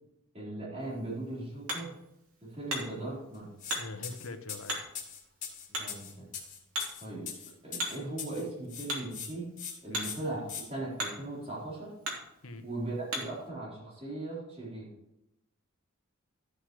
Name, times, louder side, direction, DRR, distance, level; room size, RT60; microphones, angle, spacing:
voice 1, 0.3-1.9 2.4-3.5 5.7-6.3 7.0-7.3 7.6-9.5 9.8-11.9 12.6-14.9, right 2 dB, 30° right, -6 dB, 3.9 m, -38 dB
Hammer, 0.8-13.5, equal, 70° right, 2.9 m, -41 dB
voice 2, 3.6-4.8 9.9-10.1 12.4-12.7, left 2 dB, 70° left, 8 dB, 1.0 m, -43 dB
sound 1, 3.6-3.8 4.0-8.4 8.7-9.3 9.6-9.7 10.0-10.6, left 8 dB, 35° left, 2.3 m, -41 dB
13.0 x 8.1 x 3.1 m, 0.84 s
head